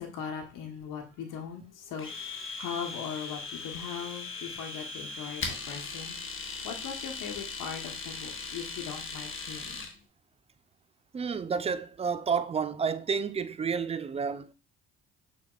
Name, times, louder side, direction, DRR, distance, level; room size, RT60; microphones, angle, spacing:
voice 1, 0.0-6.2 6.6-9.9, left 7 dB, 60° left, 1.2 m, -39 dB
Domestic sounds home sounds, 2.0-9.9, left 4 dB, 35° left, 1.0 m, -39 dB
voice 2, 11.1-14.5, right 6 dB, 20° right, 0.4 m, -30 dB
5.9 x 3.5 x 2.4 m
hypercardioid pair, 55°, 36 cm